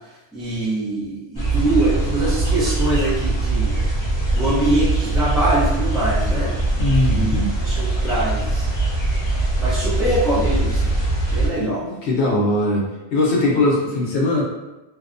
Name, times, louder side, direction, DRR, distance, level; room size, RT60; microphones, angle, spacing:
voice 1, 0.3-3.8 4.3-6.5 7.1-8.7 9.6-10.9 11.3-11.8, right 1 dB, ahead, -10 dB, 0.3 m, -23 dB
sound 1, 1.4-11.5, right 2 dB, 25° left, 0.7 m, -21 dB
voice 2, 6.8-7.5 11.6-12.9 13.1-14.4, left 2 dB, 70° left, -3 dB, 1.0 m, -20 dB
2.6 x 2.2 x 2.5 m, 1.0 s
omnidirectional pair, 1.2 m